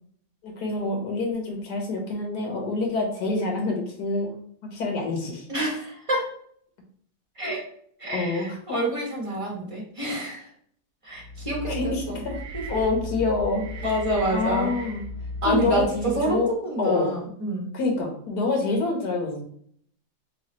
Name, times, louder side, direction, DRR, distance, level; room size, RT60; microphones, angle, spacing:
voice 1, 0.4-4.3 4.7-5.4 8.1-8.6 9.5-9.6 11.7-12.3 12.7-13.7 14.3-15.0 15.4-16.5 16.8-17.1 17.7-19.4, left 3 dB, 70° left, 1 dB, 1.7 m, -26 dB
voice 2, 5.5-6.2 7.4-7.6 8.0-10.5 11.0-12.2 12.5-12.6 13.8-14.7 15.4-17.7, right 1 dB, 20° right, -3 dB, 1.3 m, -28 dB
sound 1, 11.1-16.4, left 1 dB, 65° right, 1.3 m, -36 dB
3.9 x 3.7 x 3.1 m, 0.63 s
omnidirectional pair, 1.8 m